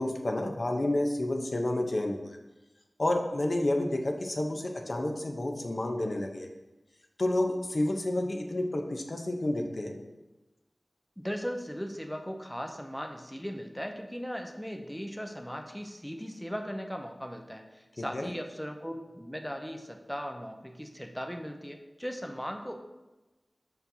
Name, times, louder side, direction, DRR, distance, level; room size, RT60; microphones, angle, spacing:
voice 1, 0.0-2.3 3.0-6.5 7.2-10.0 18.0-18.3, left 1 dB, 55° left, 3 dB, 0.7 m, -30 dB
voice 2, 11.2-22.8, equal, 5° left, 4 dB, 0.5 m, -38 dB
6.8 x 5.7 x 2.7 m, 1.1 s
wide cardioid pair, 65°, 0 cm